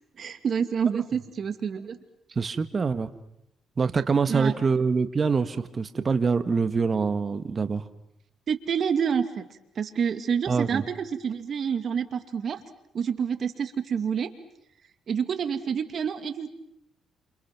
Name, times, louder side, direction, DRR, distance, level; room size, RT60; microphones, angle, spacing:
voice 1, 0.2-2.0 4.3-4.5 8.5-9.4 9.8-12.6 12.9-14.3 15.1-16.5, right 7 dB, 55° right, 9 dB, 2.4 m, -28 dB
voice 2, 2.3-3.1 3.8-7.8 10.5-10.8, right 5 dB, 35° right, 10 dB, 1.6 m, -25 dB
28.5 x 28.0 x 6.1 m, 0.77 s
cardioid pair, 90°, 0 cm